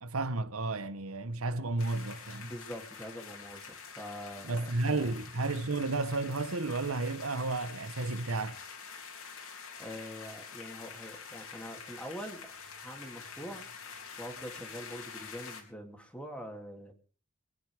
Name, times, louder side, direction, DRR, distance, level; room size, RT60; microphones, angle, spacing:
voice 1, 0.0-2.5 4.4-8.6, right 3 dB, 85° right, 1.1 m, -32 dB
sound 1, 1.8-15.6, left 6 dB, 90° left, 3.7 m, -47 dB
voice 2, 2.4-4.6 4.8-5.1 9.8-12.5 12.8-13.7 14.2-16.9, equal, 5° left, 2.6 m, -44 dB
24.0 x 9.5 x 4.9 m
head